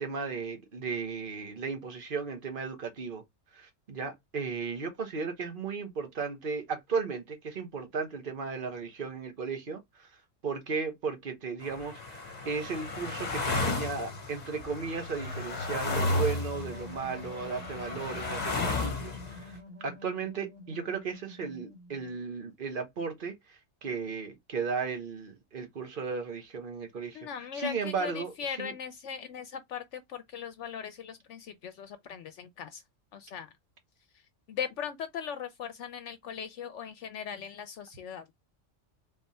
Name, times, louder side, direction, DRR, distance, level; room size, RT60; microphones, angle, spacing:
voice 1, 0.0-3.2 3.5-10.1 10.4-28.7, right 5 dB, 45° right, 1.2 m, -35 dB
sound 1, 11.6-19.5, left 2 dB, 35° left, 1.1 m, -33 dB
sound 2, 16.5-22.1, left 1 dB, 85° right, 2.3 m, -48 dB
voice 2, 27.1-32.8 33.1-33.5 34.5-38.4, left 7 dB, 70° left, 0.9 m, -39 dB
3.7 x 3.3 x 4.1 m
omnidirectional pair, 1.3 m